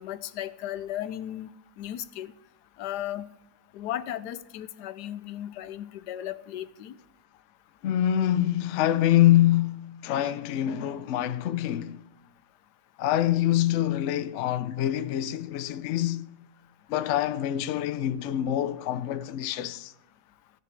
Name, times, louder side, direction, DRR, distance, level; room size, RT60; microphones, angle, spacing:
voice 1, 0.0-1.5 1.8-2.3 2.8-3.3 3.7-7.0, left 12 dB, 85° left, 1.2 m, -35 dB
voice 2, 7.8-12.0 13.0-16.3 16.9-19.9, left 12 dB, 65° left, 0.7 m, -25 dB
15.0 x 6.9 x 4.6 m
omnidirectional pair, 1.7 m